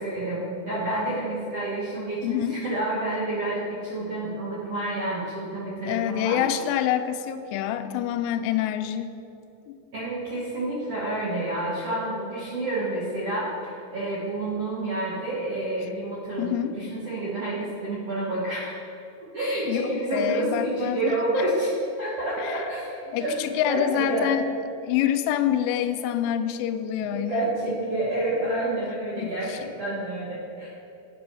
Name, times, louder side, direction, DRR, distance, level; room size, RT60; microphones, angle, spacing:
voice 1, 0.0-6.4 9.9-18.8 19.3-21.7 22.0-24.3 27.0-30.7, right 1 dB, 85° right, -7 dB, 1.3 m, -29 dB
voice 2, 2.2-2.6 5.8-9.1 9.7-9.8 16.4-16.8 19.7-21.4 22.4-22.7 23.1-24.5 24.8-27.5 28.8-29.6, left 10 dB, 85° left, 8 dB, 2.7 m, -27 dB
9.3 x 5.5 x 6.2 m, 2.8 s
omnidirectional pair, 5.0 m